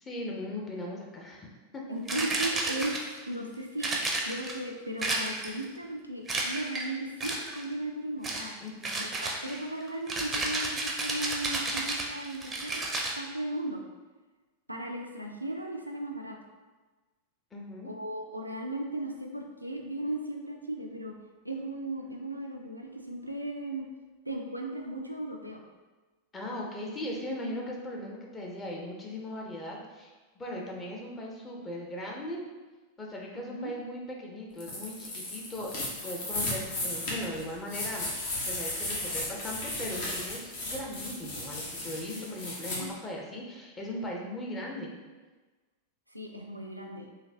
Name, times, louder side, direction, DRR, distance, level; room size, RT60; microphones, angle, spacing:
voice 1, 0.0-1.8 8.6-9.1 17.5-17.9 26.3-32.4 33.0-38.1 38.5-44.9, left 1 dB, 20° left, -1 dB, 0.8 m, -38 dB
voice 2, 1.9-8.6 9.0-12.8 13.2-13.8 14.7-16.4 17.8-21.1 21.4-23.8 24.3-25.6 33.4-33.7 36.3-36.5 42.0-43.0 46.1-47.1, right 1 dB, 90° right, 1 dB, 0.4 m, -36 dB
sound 1, 2.1-3.2 3.8-4.6 5.0-5.6 6.3-6.9 7.2-7.6 8.2-8.5 8.8-13.2, right 2 dB, 15° right, 0.6 m, -32 dB
sound 2, 34.6-42.8, left 1 dB, 55° left, 1.0 m, -35 dB
3.9 x 2.8 x 2.7 m, 1.3 s
figure-of-eight pair, 90°, 0 cm